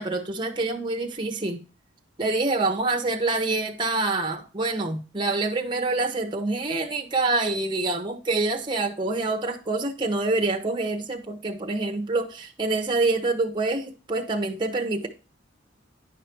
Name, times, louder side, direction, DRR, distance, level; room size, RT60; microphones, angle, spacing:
voice 1, 0.0-1.6 2.2-15.1, right 3 dB, 25° right, 1.0 m, -26 dB
10.0 x 5.1 x 4.5 m
head